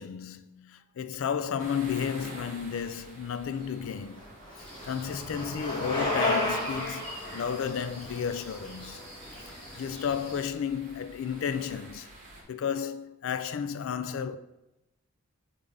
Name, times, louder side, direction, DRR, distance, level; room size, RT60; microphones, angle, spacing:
voice 1, 0.0-4.2 4.8-9.0 9.5-12.1 12.5-14.4, left 7 dB, 65° left, 0.4 m, -33 dB
sound 1, 1.6-12.4, right 2 dB, 40° right, 1.2 m, -49 dB
Bicycle, 3.6-9.6, left 2 dB, 20° left, 1.8 m, -33 dB
sound 2, 4.5-10.4, equal, 5° left, 2.1 m, -45 dB
5.3 x 3.5 x 5.2 m
head